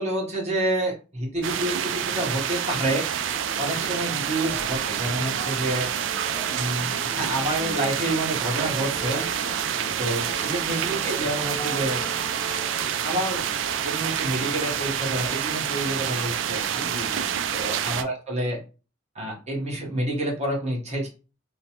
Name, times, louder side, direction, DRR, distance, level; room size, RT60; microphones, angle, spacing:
voice 1, 0.0-3.1 3.6-5.9 6.5-9.3 10.0-12.0 13.0-13.5 13.8-16.9 17.5-18.6 19.1-21.1, right 1 dB, 35° right, -2 dB, 1.1 m, -28 dB
sound 1, 1.4-18.0, right 8 dB, 90° right, 0.3 m, -28 dB
sound 2, 2.9-16.4 16.7-17.7 18.3-18.4, equal, 10° left, 0.6 m, -43 dB
voice 2, 5.0-5.4 9.4-10.4 16.8-17.4, left 2 dB, 55° left, 4 dB, 0.7 m, -41 dB
3.2 x 2.1 x 2.8 m, 0.34 s
head